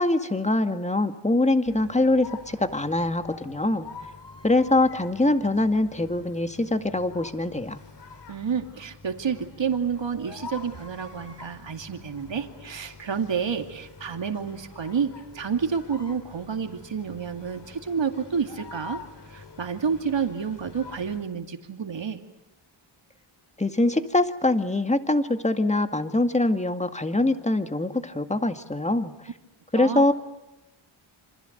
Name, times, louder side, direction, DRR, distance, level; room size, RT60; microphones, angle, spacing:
voice 1, 0.0-3.9 4.4-7.8 23.6-29.1 29.7-30.1, left 2 dB, 15° left, 8 dB, 2.0 m, -23 dB
sound 1, 1.6-21.3, left 4 dB, 55° left, 3.5 m, -46 dB
voice 2, 8.3-19.0 19.3-22.2 29.7-30.0, right 6 dB, 60° right, 6 dB, 2.5 m, -29 dB
28.0 x 26.0 x 8.0 m, 0.98 s
wide cardioid pair, 100°, 49 cm